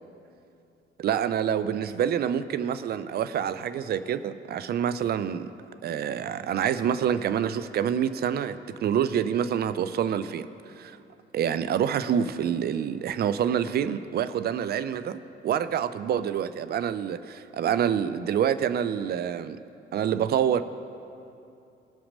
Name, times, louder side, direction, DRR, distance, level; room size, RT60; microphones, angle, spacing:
voice 1, 1.0-5.5 5.8-10.5 10.8-11.0 11.3-19.6 19.9-20.6, right 9 dB, 35° right, 13 dB, 0.4 m, -27 dB
15.5 x 5.7 x 5.2 m, 2.7 s
figure-of-eight pair, 45°, 29 cm